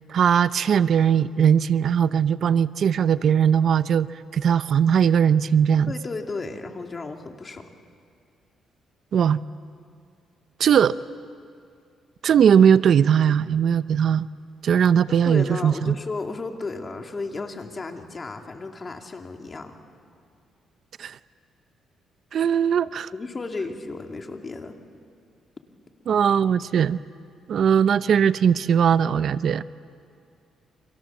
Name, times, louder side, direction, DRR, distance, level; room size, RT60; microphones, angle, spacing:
voice 1, 0.1-4.1 4.3-5.9 9.1-9.4 10.6-11.0 12.2-14.3 14.6-15.9 21.0-21.2 22.3-23.1 26.1-27.0 27.5-29.6, right 8 dB, 60° right, 15 dB, 0.6 m, -19 dB
voice 2, 5.9-7.7 15.2-19.8 23.1-24.8, left 3 dB, 30° left, 4 dB, 2.8 m, -33 dB
30.0 x 26.0 x 7.4 m, 2.3 s
cardioid pair, 90°, 0 cm